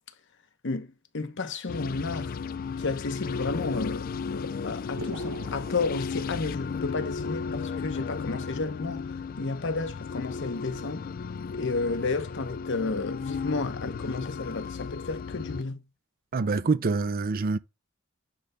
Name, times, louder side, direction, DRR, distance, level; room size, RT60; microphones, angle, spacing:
voice 1, 0.6-2.4 2.8-4.0 4.3-11.1 11.5-15.8, left 3 dB, 60° left, 1.0 m, -32 dB
sound 1, 1.7-15.6, left 5 dB, 45° left, 0.3 m, -35 dB
sound 2, 5.0-6.9, right 3 dB, 80° right, 1.0 m, -44 dB
voice 2, 16.3-17.6, right 4 dB, 45° right, 0.5 m, -26 dB
10.0 x 3.4 x 5.6 m
head